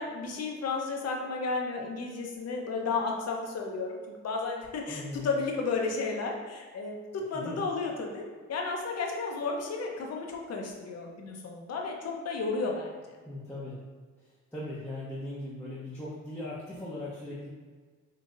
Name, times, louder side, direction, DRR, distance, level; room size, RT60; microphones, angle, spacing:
voice 1, 0.0-8.2 8.5-12.9, left 4 dB, 55° left, 1 dB, 0.8 m, -33 dB
voice 2, 4.9-5.3 7.4-7.6 13.2-13.8 14.5-17.5, left 1 dB, 5° left, -8 dB, 0.9 m, -39 dB
5.3 x 2.8 x 2.5 m, 1.5 s
cardioid pair, 90°, 30 cm